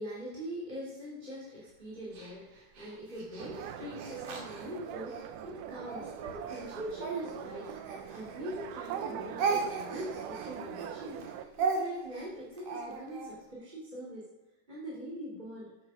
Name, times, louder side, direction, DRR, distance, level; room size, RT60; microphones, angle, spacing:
voice 1, 0.0-14.3 14.7-15.7, equal, 15° right, -7 dB, 2.7 m, -43 dB
Speech, 2.1-5.3 5.8-8.6 8.9-13.3, right 5 dB, 60° right, 3.4 m, -36 dB
sound 1, 3.4-11.5, right 9 dB, 80° right, 1.9 m, -42 dB
13.0 x 8.9 x 6.4 m, 1.1 s
omnidirectional pair, 4.5 m